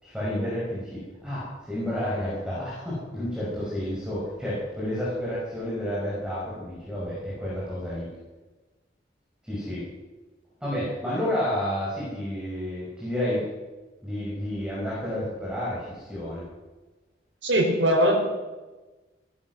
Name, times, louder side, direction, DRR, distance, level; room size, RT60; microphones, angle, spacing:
voice 1, 0.0-8.1 9.4-9.9 10.6-13.4 14.0-16.4, equal, 5° right, -8 dB, 5.6 m, -30 dB
voice 2, 17.4-18.2, equal, 85° right, 1 dB, 4.1 m, -21 dB
17.5 x 12.0 x 6.2 m, 1.2 s
head